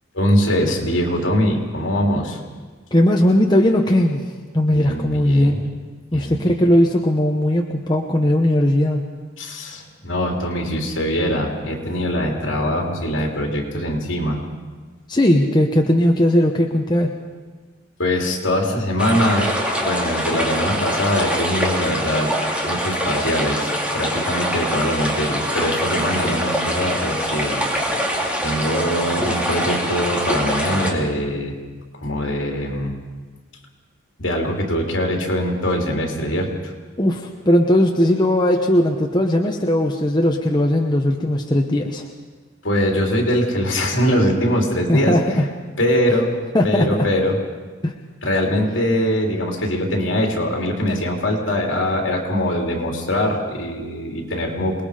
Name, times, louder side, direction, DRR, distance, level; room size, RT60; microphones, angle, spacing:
voice 1, 0.1-2.4 4.7-5.6 6.1-6.4 9.4-14.4 18.0-22.3 22.7-27.6 28.4-31.5 32.0-32.9 34.2-36.7 42.6-45.2 45.8-46.3 46.6-47.4 48.2-54.8, equal, 65° left, 1 dB, 3.5 m, -22 dB
voice 2, 2.9-4.2 4.5-5.5 6.1-9.0 15.1-17.1 37.0-42.1 44.9-45.5 46.5-47.1 47.8-47.9, left 1 dB, 20° left, 1 dB, 1.1 m, -18 dB
sound 1, 19.0-30.9, equal, 5° right, 2.5 m, -24 dB
27.5 x 20.0 x 5.1 m, 1.4 s
head